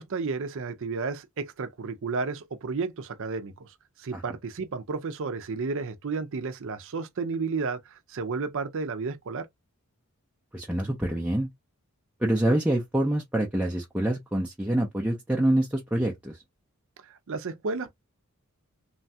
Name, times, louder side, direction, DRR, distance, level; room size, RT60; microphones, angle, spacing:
voice 1, 0.0-9.5 17.0-17.9, right 4 dB, 60° right, 0.5 m, -32 dB
voice 2, 10.5-11.5 12.2-16.4, right 1 dB, 5° right, 0.5 m, -26 dB
3.1 x 2.3 x 2.6 m
head